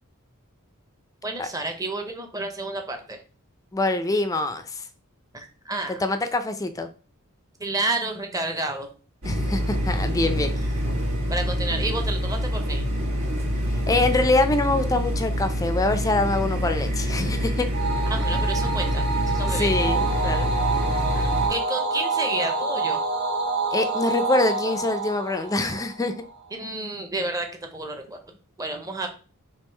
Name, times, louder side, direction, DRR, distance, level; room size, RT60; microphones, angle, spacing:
voice 1, 1.2-3.2 5.3-6.0 7.6-8.9 11.3-12.8 18.1-19.7 21.1-23.0 26.5-28.2 28.6-29.1, right 2 dB, 15° right, 5 dB, 0.7 m, -30 dB
voice 2, 3.7-4.8 5.9-6.9 9.2-10.6 13.9-17.7 19.5-20.5 23.7-26.1, left 2 dB, 15° left, 9 dB, 0.4 m, -24 dB
sound 1, 9.2-21.5, equal, 75° right, 1.3 m, -26 dB
sound 2, 17.7-26.3, right 3 dB, 50° right, 0.9 m, -27 dB
3.5 x 2.8 x 4.4 m, 0.38 s
head